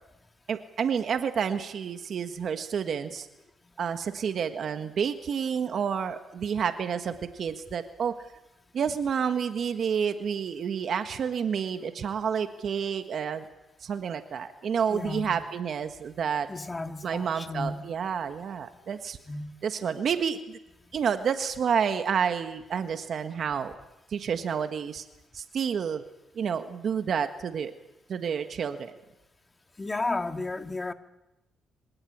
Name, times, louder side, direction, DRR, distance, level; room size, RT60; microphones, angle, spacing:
voice 1, 0.5-3.3 3.8-8.1 8.7-13.4 13.8-16.5 17.0-19.2 19.6-20.6 20.9-23.8 24.1-25.0 25.3-26.0 26.3-27.7 28.1-28.9, right 7 dB, 60° right, 8 dB, 1.5 m, -29 dB
voice 2, 14.9-15.5 16.5-17.9 18.7-18.8 19.3-19.6 29.8-30.9, left 2 dB, 20° left, 6 dB, 1.9 m, -33 dB
24.5 x 17.5 x 8.8 m, 0.95 s
cardioid pair, 90°, 0 cm